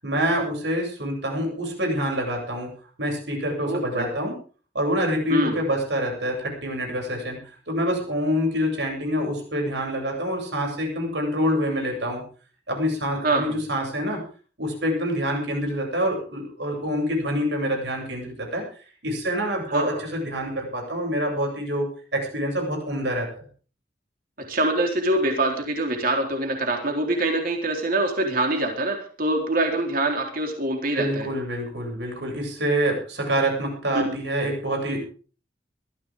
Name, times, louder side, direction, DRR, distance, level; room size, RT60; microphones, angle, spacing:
voice 1, 0.0-2.7 3.0-4.3 4.7-7.4 7.7-12.2 12.7-14.2 14.6-18.6 19.0-21.9 22.1-23.5 30.9-35.0, equal, 80° right, 2 dB, 7.9 m, -26 dB
voice 2, 3.6-4.0 5.3-5.6 13.2-13.4 19.7-20.0 24.5-31.3 33.9-34.0, right 2 dB, 55° right, 2 dB, 4.2 m, -24 dB
21.5 x 14.5 x 3.8 m, 0.40 s
head